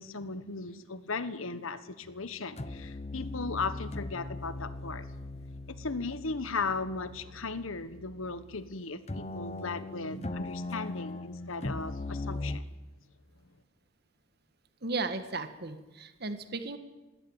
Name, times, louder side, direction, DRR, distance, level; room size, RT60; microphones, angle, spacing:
voice 1, 0.0-5.1 5.3-5.4 5.7-12.6, left 3 dB, 75° left, 1.4 m, -37 dB
sound 1, 2.0-2.3 2.6-8.8 9.1-12.6, left 2 dB, 30° left, 0.8 m, -39 dB
voice 2, 14.8-16.8, right 3 dB, 50° right, 1.6 m, -35 dB
20.5 x 17.0 x 8.9 m
head